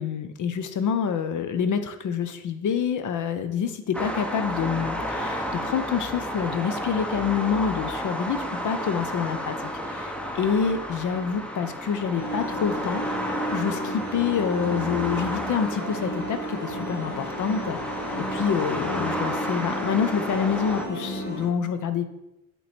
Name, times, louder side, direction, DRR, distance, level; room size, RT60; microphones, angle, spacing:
voice 1, 0.0-9.5 9.9-13.0 13.5-17.8 18.2-22.0, left 7 dB, 50° left, 9 dB, 0.6 m, -27 dB
sound 1, 3.9-20.9, equal, 5° left, 0.7 m, -32 dB
sound 2, 12.1-21.5, equal, 25° left, 2.4 m, -33 dB
8.0 x 3.1 x 4.2 m, 0.91 s
cardioid pair, 95°, 40 cm